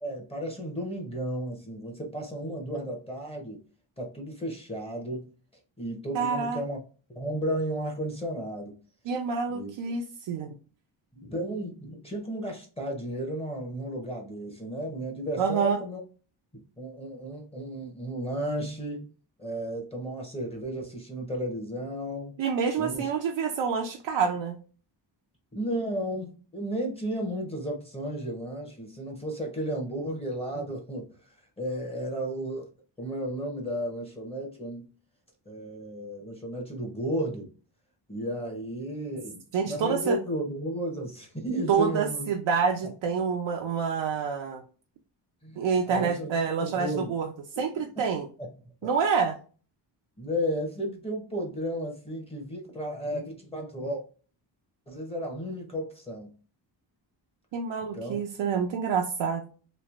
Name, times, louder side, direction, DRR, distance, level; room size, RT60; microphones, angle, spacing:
voice 1, 0.0-3.6 4.0-5.3 5.8-6.8 7.1-8.8 9.5-9.7 11.1-16.0 16.8-19.1 19.4-22.4 22.8-23.1 25.5-31.2 31.6-32.7 33.0-34.9 35.5-37.5 38.1-42.3 45.4-45.6 45.9-46.3 46.6-47.1 47.7-48.1 50.2-54.0 54.9-56.3 57.9-58.2, right 1 dB, 15° left, 0 dB, 0.8 m, -33 dB
voice 2, 6.1-6.6 9.1-10.5 15.4-15.8 22.4-24.6 39.5-40.2 41.7-44.6 45.6-47.3 47.6-48.3 48.8-49.4 57.5-59.4, right 6 dB, 70° right, 2 dB, 0.6 m, -27 dB
3.1 x 2.5 x 2.4 m, 0.38 s
cardioid pair, 100°, 47 cm